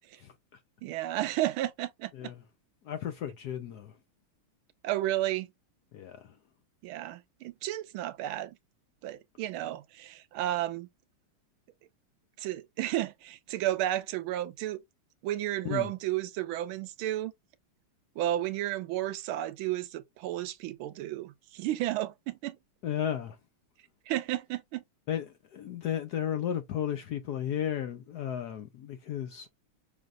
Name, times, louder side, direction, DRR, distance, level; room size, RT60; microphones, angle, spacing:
voice 1, 0.2-0.6 2.1-2.4 2.8-4.0 5.9-6.4 15.6-15.9 22.8-23.4 25.1-29.5, left 9 dB, 70° left, 0.9 m, -34 dB
voice 2, 0.8-2.3 4.8-5.5 6.8-8.6 9.0-10.9 12.4-14.8 15.2-17.3 18.2-22.6 24.1-24.8, right 14 dB, 80° right, 1.4 m, -32 dB
6.1 x 3.5 x 2.5 m
omnidirectional pair, 2.4 m